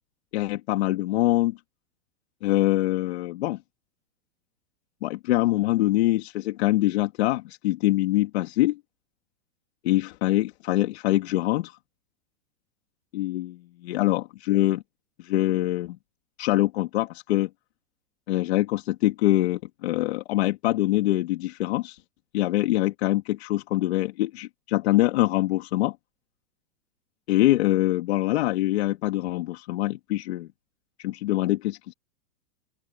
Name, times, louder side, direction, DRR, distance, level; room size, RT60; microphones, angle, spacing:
voice 1, 0.3-1.6 2.4-3.6 5.0-8.8 9.8-11.8 13.1-13.5 13.8-14.8 15.2-16.0 16.4-17.5 18.3-22.0 22.3-25.9 27.3-30.5 31.0-31.9, left 16 dB, 45° left, 2.9 m, -24 dB
open air
supercardioid pair, 170°, 43 cm